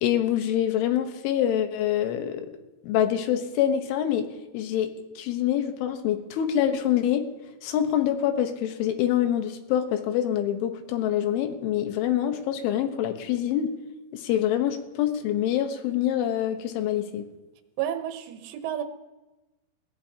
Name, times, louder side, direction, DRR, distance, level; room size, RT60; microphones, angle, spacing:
voice 1, 0.0-2.5 2.8-4.3 4.5-7.3 7.6-13.8 14.1-17.3, left 10 dB, 90° left, 7 dB, 3.7 m, -25 dB
voice 2, 17.8-18.8, right 10 dB, 85° right, 7 dB, 3.6 m, -31 dB
20.5 x 19.0 x 2.9 m, 1.1 s
omnidirectional pair, 5.4 m